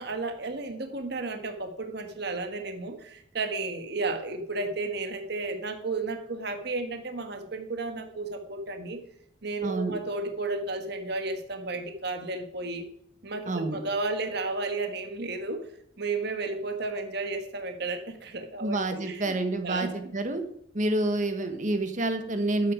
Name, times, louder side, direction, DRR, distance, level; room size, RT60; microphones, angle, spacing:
voice 1, 0.0-9.0 9.4-12.9 13.2-15.6 16.0-19.4 19.6-19.9, right 3 dB, 60° right, 6 dB, 1.5 m, -33 dB
voice 2, 9.6-9.9 13.5-13.8 18.6-20.4 20.7-22.7, right 2 dB, 40° right, 7 dB, 1.3 m, -28 dB
11.0 x 8.4 x 5.0 m, 0.68 s
head